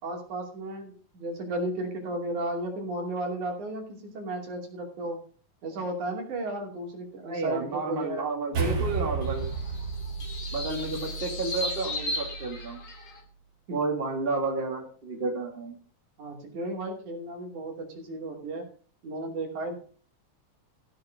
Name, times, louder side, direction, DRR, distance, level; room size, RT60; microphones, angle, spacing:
voice 1, 0.0-5.2 5.6-8.3 13.7-13.8 16.2-18.7 19.0-19.7, right 2 dB, 75° right, 1 dB, 4.2 m, -34 dB
voice 2, 7.2-9.5 10.5-12.8 13.7-15.7, right 3 dB, 20° right, 1 dB, 2.4 m, -31 dB
sound 1, 8.5-13.1, right 4 dB, 55° right, 4.3 m, -33 dB
sound 2, 9.2-13.2, left 2 dB, 45° left, 3.1 m, -36 dB
15.0 x 6.9 x 5.1 m, 0.42 s
omnidirectional pair, 3.5 m